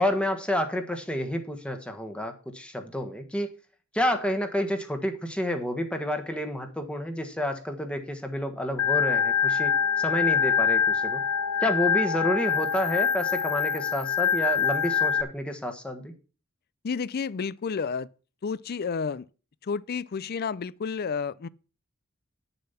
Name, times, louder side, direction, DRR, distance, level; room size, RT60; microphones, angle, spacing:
voice 1, 0.0-3.5 3.9-11.2 11.6-16.1, equal, 5° left, 1.3 m, -29 dB
Organ, 8.8-15.2, left 7 dB, 90° left, 0.8 m, -25 dB
voice 2, 16.8-18.1 18.4-19.3 19.6-21.5, left 5 dB, 45° left, 0.4 m, -31 dB
9.7 x 7.1 x 5.6 m
head